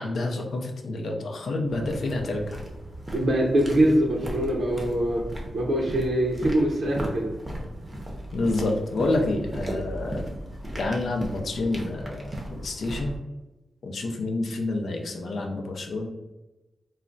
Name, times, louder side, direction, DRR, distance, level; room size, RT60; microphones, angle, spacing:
voice 1, 0.0-2.4 8.3-10.3 10.8-13.2 13.8-16.1, left 2 dB, 70° left, 2 dB, 0.5 m, -28 dB
sound 1, 1.7-13.2, equal, 20° right, 0.6 m, -37 dB
voice 2, 3.1-5.2 5.5-7.3, right 1 dB, 70° right, -3 dB, 0.5 m, -23 dB
2.3 x 2.1 x 3.7 m, 1.0 s
wide cardioid pair, 95°, 0 cm